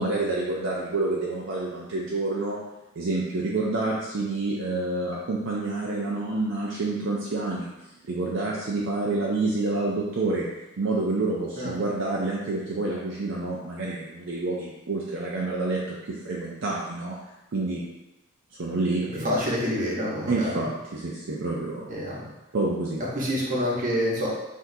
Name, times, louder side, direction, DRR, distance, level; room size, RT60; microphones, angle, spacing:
voice 1, 0.0-2.6 3.0-7.7 8.0-10.5 10.8-17.8 18.6-19.3 20.3-22.0 22.5-23.0, right 2 dB, 60° right, -4 dB, 0.5 m, -28 dB
voice 2, 19.2-20.5 21.9-22.3 23.1-24.3, equal, 40° right, -5 dB, 1.0 m, -27 dB
5.9 x 2.6 x 2.7 m, 0.99 s
head